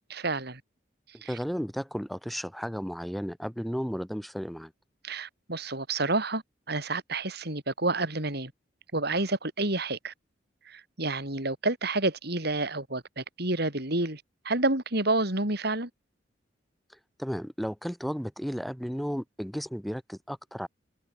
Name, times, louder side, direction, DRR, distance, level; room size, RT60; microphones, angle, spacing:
voice 1, 0.1-0.6 1.2-1.4 5.0-8.5 8.9-10.1 10.7-15.9, right 2 dB, 60° right, 6.9 m, -29 dB
voice 2, 1.1-4.7 17.2-20.7, equal, ahead, 7.0 m, -34 dB
head